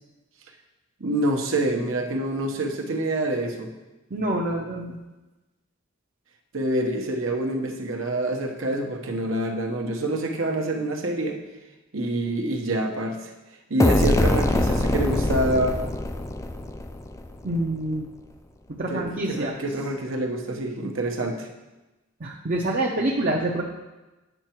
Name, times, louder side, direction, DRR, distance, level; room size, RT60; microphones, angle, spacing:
voice 1, 1.0-3.7 6.5-11.4 11.9-13.2 13.7-15.8 18.9-21.5, right 1 dB, 75° right, 2 dB, 1.0 m, -26 dB
voice 2, 4.1-5.0 17.4-18.1 18.8-19.5 22.2-23.6, right 1 dB, 45° right, -1 dB, 0.7 m, -26 dB
sound 1, 13.8-17.4, left 1 dB, 15° left, 0.4 m, -23 dB
8.9 x 5.7 x 4.5 m, 1.1 s
head